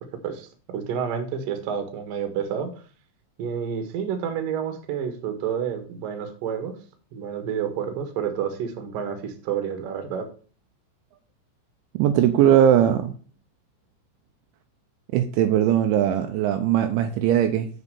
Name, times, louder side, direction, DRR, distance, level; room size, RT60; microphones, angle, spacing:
voice 1, 0.7-2.7 3.4-6.8 7.1-10.3, right 8 dB, 60° right, 6 dB, 2.4 m, -29 dB
voice 2, 11.9-13.1 15.1-17.7, right 10 dB, 85° right, 7 dB, 2.8 m, -20 dB
8.2 x 5.3 x 6.7 m, 0.40 s
omnidirectional pair, 5.8 m